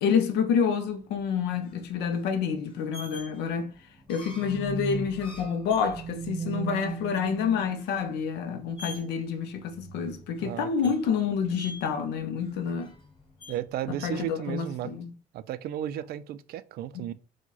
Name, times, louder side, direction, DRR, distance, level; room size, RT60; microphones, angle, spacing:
voice 1, 0.0-3.7 4.1-12.9 13.9-15.1 16.9-17.0, left 6 dB, 85° left, 0.5 m, -28 dB
sound 1, 0.9-14.3, left 2 dB, 30° left, 1.7 m, -49 dB
sound 2, 3.7-8.3 8.8-9.3 9.7-10.3 10.8-11.0 11.4-11.5, right 6 dB, 25° right, 0.8 m, -38 dB
voice 2, 10.4-10.9 13.5-14.9 15.3-17.1, right 11 dB, 65° right, 0.4 m, -34 dB
4.7 x 2.2 x 3.9 m
cardioid pair, 110°, 17 cm